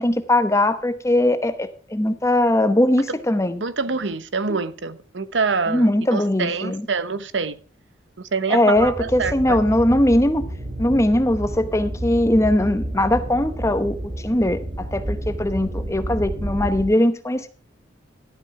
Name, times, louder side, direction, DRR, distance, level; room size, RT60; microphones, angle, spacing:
voice 1, 0.0-3.6 4.5-4.6 5.7-6.9 8.5-10.5 10.8-14.0 14.2-17.5, left 1 dB, 15° left, 0.9 m, -20 dB
voice 2, 3.6-7.5 8.3-9.6, right 4 dB, 90° right, 0.9 m, -25 dB
sound 1, 8.8-16.9, right 1 dB, 45° right, 3.7 m, -30 dB
12.5 x 8.7 x 4.8 m
head